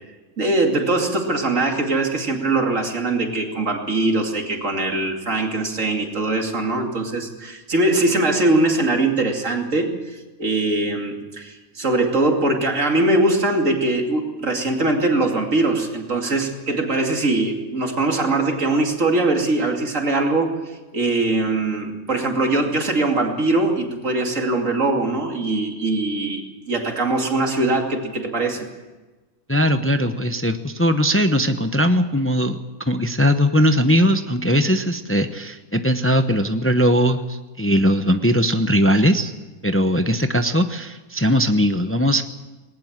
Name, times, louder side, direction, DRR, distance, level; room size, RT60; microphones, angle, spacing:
voice 1, 0.4-28.7, right 2 dB, 60° right, 3 dB, 3.0 m, -21 dB
voice 2, 29.5-39.3 39.6-42.2, equal, 10° left, 8 dB, 0.7 m, -19 dB
19.5 x 19.0 x 7.5 m, 1.2 s
omnidirectional pair, 1.5 m